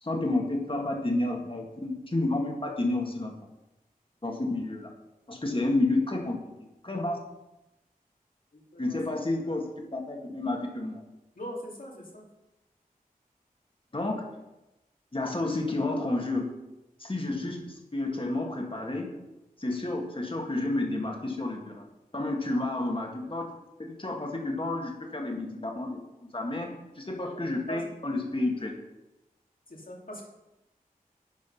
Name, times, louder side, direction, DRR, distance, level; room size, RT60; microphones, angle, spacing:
voice 1, 0.0-3.3 4.2-4.9 5.3-6.4 6.8-7.2 8.8-9.7 9.9-11.0 13.9-14.2 15.1-16.5 17.0-19.1 19.6-21.8 22.1-23.5 23.8-28.8, left 2 dB, 35° left, 1 dB, 2.0 m, -30 dB
voice 2, 8.5-9.7 11.4-12.3 13.9-14.0 17.5-17.6 27.7-27.8 29.7-30.2, equal, 65° left, -2 dB, 2.6 m, -42 dB
10.5 x 5.2 x 5.5 m, 0.96 s
wide cardioid pair, 50°, 15 cm